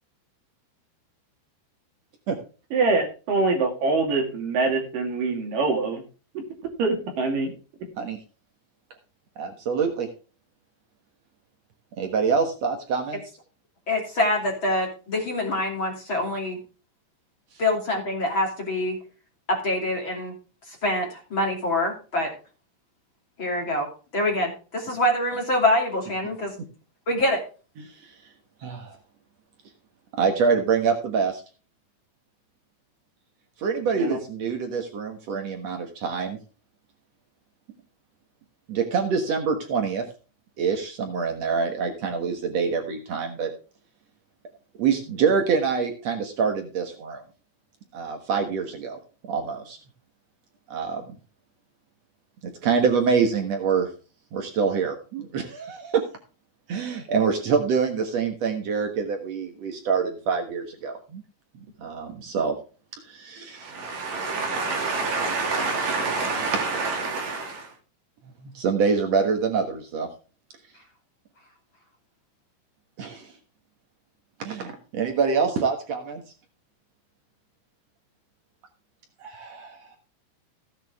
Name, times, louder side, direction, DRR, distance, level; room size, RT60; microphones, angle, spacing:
voice 1, 2.7-6.0 6.4-6.5 6.8-7.5 34.0-34.2 63.6-67.7, right 3 dB, 50° right, 3 dB, 3.6 m, -25 dB
voice 2, 9.4-10.1 12.0-13.2 27.8-28.1 28.6-29.0 30.1-31.4 33.6-36.4 38.7-40.0 40.6-43.5 44.8-47.2 47.9-49.0 49.3-49.8 50.7-51.1 52.4-53.9 54.3-56.0 56.7-61.2 61.8-62.5 63.1-63.7 68.4-70.1 73.0-73.3 74.4-76.2 79.2-79.9, right 5 dB, 90° right, 5 dB, 1.4 m, -25 dB
voice 3, 13.9-16.6 17.6-19.0 19.5-20.3 20.7-22.3 23.4-23.9 24.1-26.5 27.1-27.4, left 1 dB, 30° left, 0 dB, 2.9 m, -25 dB
15.5 x 8.8 x 3.5 m, 0.35 s
omnidirectional pair, 5.4 m